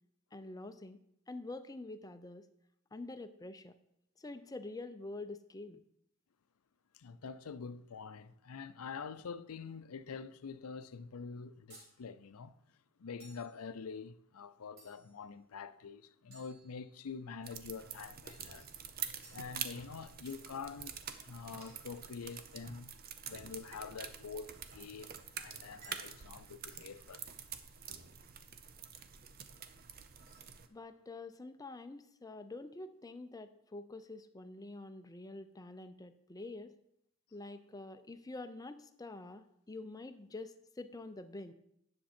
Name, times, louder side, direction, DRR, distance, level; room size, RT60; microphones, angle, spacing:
voice 1, 0.3-1.0 1.3-2.4 2.9-3.7 4.2-5.8 30.7-36.7 37.3-41.5, left 2 dB, 15° left, 0.5 m, -47 dB
voice 2, 6.9-12.6 13.0-18.7 19.3-20.9 21.2-22.9 23.2-27.2 30.2-30.4, left 5 dB, 85° left, 0.5 m, -46 dB
sound 1, 11.7-11.9 13.2-13.5 14.8-15.2 16.3-17.2 18.3-18.6 19.2-19.5 20.2-20.5 21.6-21.8 22.6-22.9 23.7-24.0 24.7-24.9 25.7-26.3, right 2 dB, 65° right, 4.4 m, -59 dB
sound 2, 17.4-30.7, right 8 dB, 45° right, 0.7 m, -47 dB
10.0 x 6.8 x 4.3 m
head